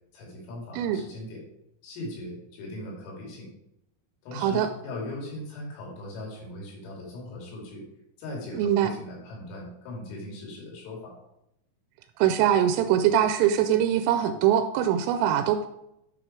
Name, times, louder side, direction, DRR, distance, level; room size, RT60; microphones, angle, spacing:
voice 1, 0.1-1.4 1.8-3.5 4.2-7.8 8.2-11.1, left 1 dB, 90° left, -2 dB, 5.4 m, -39 dB
voice 2, 4.3-4.7 8.5-8.9 12.2-15.7, right 10 dB, 85° right, 9 dB, 3.1 m, -23 dB
10.5 x 6.0 x 4.5 m, 0.81 s
omnidirectional pair, 5.7 m